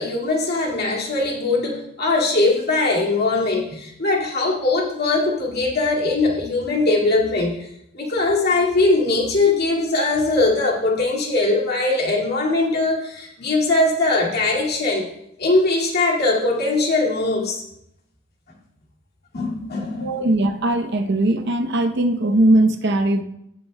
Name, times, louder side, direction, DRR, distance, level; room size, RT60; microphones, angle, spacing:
voice 1, 0.0-7.7 7.9-15.1 15.4-17.6 19.3-20.2, left 2 dB, 50° left, -2 dB, 2.1 m, -21 dB
voice 2, 20.0-23.2, right 1 dB, 55° right, 7 dB, 0.7 m, -19 dB
18.0 x 7.1 x 2.2 m, 0.78 s
head